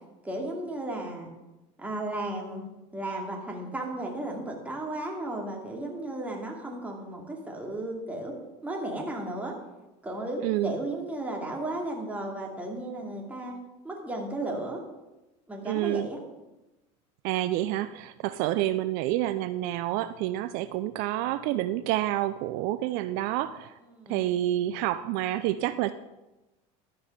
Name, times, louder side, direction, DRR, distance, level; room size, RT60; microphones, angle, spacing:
voice 1, 0.2-1.3 1.8-2.6 2.9-8.3 8.6-9.6 10.0-13.6 13.8-14.8 15.5-16.2 23.9-24.2, right 1 dB, 10° right, 0 dB, 2.5 m, -34 dB
voice 2, 10.4-10.7 15.7-16.1 17.2-23.7 24.1-25.9, right 14 dB, 65° right, 12 dB, 0.5 m, -28 dB
12.5 x 5.5 x 6.6 m, 1.0 s
supercardioid pair, 115°, 16 cm